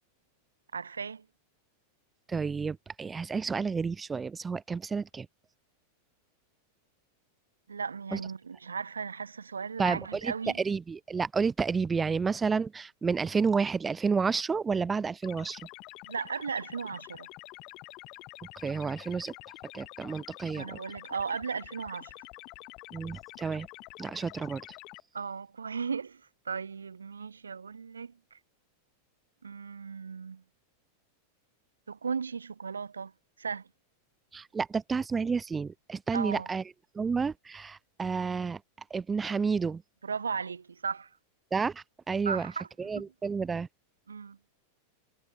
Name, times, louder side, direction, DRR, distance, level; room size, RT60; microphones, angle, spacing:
voice 1, 0.7-1.2 7.7-10.6 16.1-17.3 20.5-22.1 25.1-26.2 26.5-28.4 29.4-30.4 31.9-33.1 33.4-33.7 36.1-36.5 40.0-41.1 42.3-42.7 44.1-44.4, right 5 dB, 75° right, 2.1 m, -36 dB
voice 2, 2.3-5.3 8.1-8.2 9.8-15.6 18.6-19.3 19.7-20.8 22.9-23.7 24.0-24.6 34.3-36.6 36.9-38.6 38.9-39.8 41.5-42.5 42.8-43.7, right 5 dB, 15° right, 1.1 m, -30 dB
sound 1, 15.2-25.0, left 22 dB, 40° left, 7.0 m, -48 dB
figure-of-eight pair, 90°, 0 cm